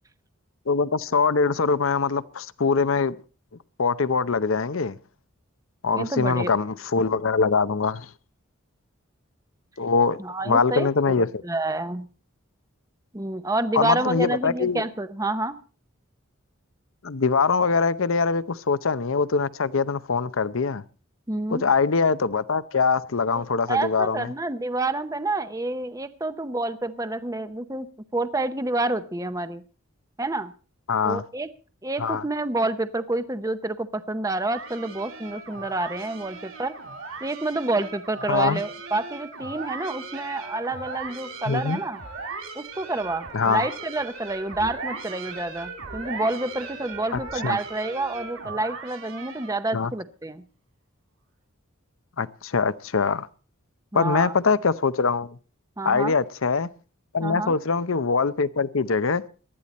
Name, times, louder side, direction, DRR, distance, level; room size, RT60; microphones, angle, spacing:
voice 1, 0.7-3.2 3.8-5.0 5.8-8.1 9.8-10.2 10.4-11.3 13.7-14.8 17.0-20.8 21.5-24.3 30.9-31.2 32.0-32.2 38.3-38.6 41.5-41.8 43.3-43.7 47.1-47.6 49.7-49.9 52.2-53.3 53.9-55.4 55.8-56.7 57.1-59.2, left 4 dB, 75° left, 0.7 m, -23 dB
voice 2, 5.9-6.5 10.2-12.1 13.1-15.6 21.3-21.6 23.3-27.9 28.1-29.6 30.2-30.5 31.0-31.5 31.8-36.7 37.2-42.0 42.5-50.4 53.9-54.3 55.8-56.2 57.2-57.6, right 2 dB, 15° right, 0.7 m, -28 dB
sound 1, 34.5-49.7, right 4 dB, 75° right, 4.1 m, -38 dB
18.5 x 12.5 x 4.2 m
head